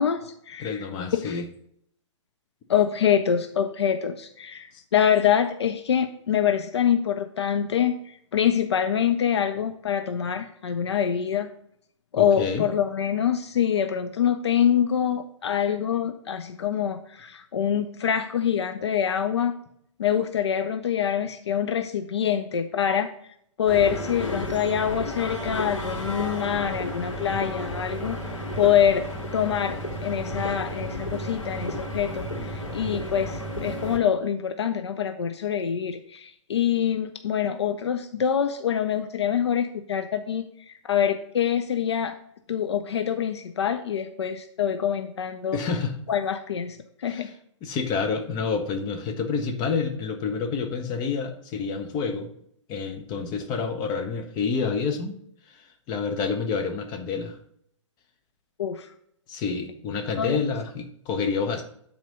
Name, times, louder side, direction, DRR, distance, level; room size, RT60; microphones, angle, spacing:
voice 1, 0.0-0.9 1.1-1.4 2.7-11.5 12.1-19.5 20.0-23.1 23.6-29.0 29.3-42.2 42.5-45.6 46.1-47.3 58.6-58.9 60.2-60.4, left 8 dB, 60° left, 7 dB, 0.6 m, -25 dB
voice 2, 0.6-1.5 12.2-12.7 45.5-45.9 47.1-47.3 47.6-52.3 52.7-55.2 55.9-57.4 59.3-61.6, left 5 dB, 25° left, 5 dB, 1.1 m, -28 dB
sound 1, 23.7-34.0, equal, 80° left, 3.0 m, -32 dB
9.0 x 4.3 x 5.3 m, 0.69 s
figure-of-eight pair, 115°, 16 cm